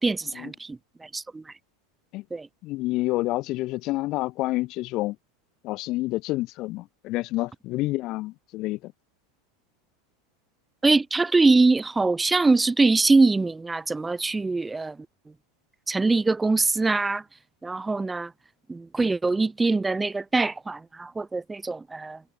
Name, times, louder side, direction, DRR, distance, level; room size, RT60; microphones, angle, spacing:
voice 1, 0.0-1.5 2.3-2.5 10.8-15.0 15.9-17.2 17.6-18.3 18.7-22.2, right 3 dB, 10° right, 0.4 m, -23 dB
voice 2, 2.6-5.2 5.6-8.9, left 19 dB, 45° left, 0.5 m, -28 dB
figure-of-eight pair, 85°, 0 cm